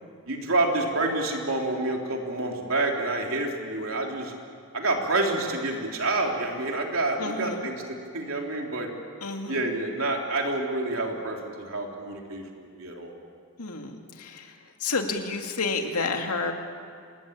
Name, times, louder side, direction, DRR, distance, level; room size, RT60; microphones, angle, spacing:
voice 1, 0.3-4.3 4.7-8.9 9.5-13.1, right 2 dB, 65° right, 1 dB, 3.7 m, -28 dB
voice 2, 7.2-7.7 9.2-9.7 13.6-16.5, left 4 dB, 85° left, 3 dB, 2.5 m, -30 dB
27.0 x 20.0 x 9.0 m, 2.2 s
head